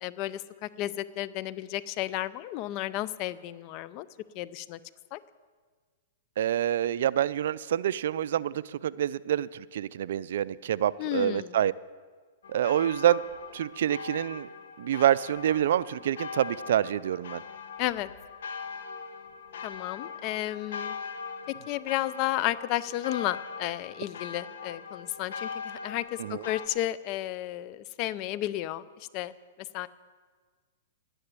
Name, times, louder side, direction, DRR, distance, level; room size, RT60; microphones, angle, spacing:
voice 1, 0.0-4.1 4.3-4.8 5.1-5.2 11.0-11.6 17.8-18.1 19.6-20.9 21.7-29.3 29.7-29.9, left 14 dB, 35° left, 17 dB, 0.5 m, -32 dB
voice 2, 6.4-11.7 12.5-13.2 13.5-14.5 14.8-17.4 26.2-26.4, right 11 dB, 70° right, 19 dB, 0.4 m, -27 dB
sound 1, 12.4-26.7, left 6 dB, 75° left, 1.3 m, -41 dB
11.0 x 10.0 x 8.2 m, 1.5 s
hypercardioid pair, 150°, 0 cm